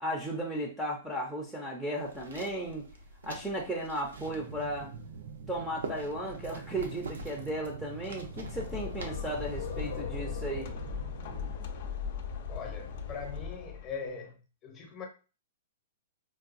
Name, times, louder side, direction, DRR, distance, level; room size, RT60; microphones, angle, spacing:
voice 1, 0.0-2.8 3.2-4.9 5.5-10.7, right 1 dB, 5° right, 0.5 m, -35 dB
sound 1, 2.0-10.0, right 2 dB, 90° right, 0.7 m, -46 dB
sound 2, 4.1-11.5, right 7 dB, 55° right, 0.3 m, -46 dB
sound 3, 8.2-14.1, left 6 dB, 55° left, 0.5 m, -38 dB
voice 2, 12.5-15.0, left 5 dB, 25° left, 0.8 m, -41 dB
4.6 x 2.2 x 2.5 m
hypercardioid pair, 155°, 0 cm